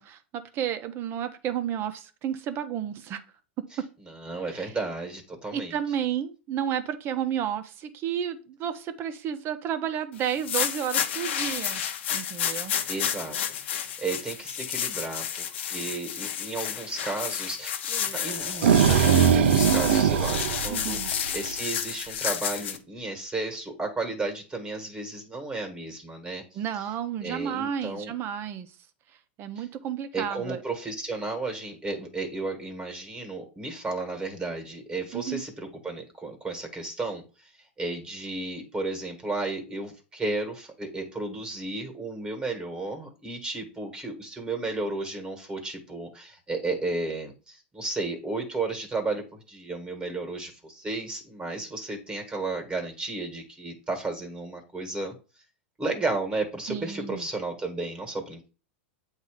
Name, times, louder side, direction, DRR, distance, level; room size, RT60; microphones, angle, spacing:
voice 1, 0.0-3.2 3.6-3.9 4.5-4.8 5.5-11.8 12.1-12.7 20.7-21.1 26.5-28.8 29.4-30.6 35.1-35.4 56.7-57.3, right 9 dB, 40° right, 9 dB, 0.9 m, -32 dB
voice 2, 4.1-5.8 12.9-26.4 27.2-28.1 29.6-29.7 30.1-37.2 37.8-55.1 55.8-58.5, right 3 dB, 15° right, 4 dB, 1.6 m, -33 dB
sound 1, 10.3-22.8, left 9 dB, 70° left, 0.8 m, -31 dB
sound 2, 18.3-21.5, right 8 dB, 75° right, 0.6 m, -21 dB
8.0 x 2.8 x 4.9 m, 0.34 s
hypercardioid pair, 110°, 6 cm